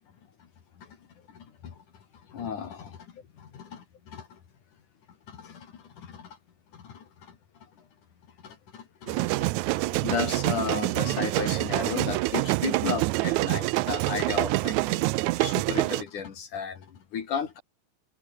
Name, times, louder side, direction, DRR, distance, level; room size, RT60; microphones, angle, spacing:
voice 1, 1.3-1.8 2.1-4.4 5.3-6.4 6.7-7.9 8.4-17.6, left 7 dB, 70° left, 4.0 m, -35 dB
sound 1, 9.1-16.0, right 20 dB, 80° right, 1.7 m, -26 dB
omnidirectional pair, 3.7 m